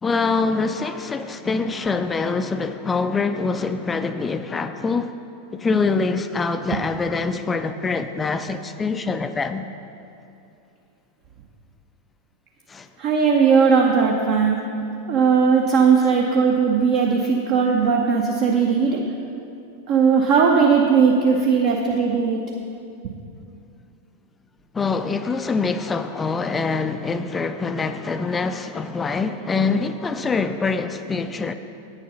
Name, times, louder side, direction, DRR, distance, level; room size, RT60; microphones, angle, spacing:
voice 1, 0.0-5.2 5.5-9.7 12.7-12.9 24.7-31.5, left 4 dB, 15° left, 0.4 m, -24 dB
voice 2, 13.0-14.6 15.1-19.0 19.9-22.4, right 5 dB, 45° right, 0.7 m, -18 dB
9.0 x 7.4 x 5.5 m
figure-of-eight pair, 90°, 0 cm